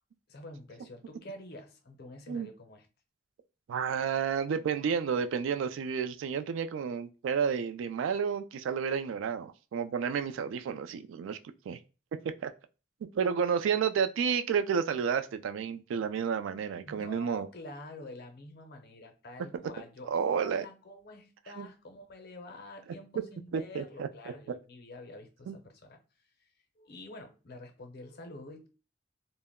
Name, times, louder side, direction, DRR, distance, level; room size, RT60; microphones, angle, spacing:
voice 1, 0.3-2.9 16.8-26.0 26.4-26.5 26.8-28.7, left 2 dB, 55° left, 0.6 m, -47 dB
voice 2, 3.7-11.4 11.7-11.8 12.4-12.5 13.1-17.5 20.1-20.7 21.6-21.7 23.5-24.1 25.5-25.6, right 6 dB, 85° right, 0.3 m, -31 dB
2.1 x 2.0 x 3.4 m
head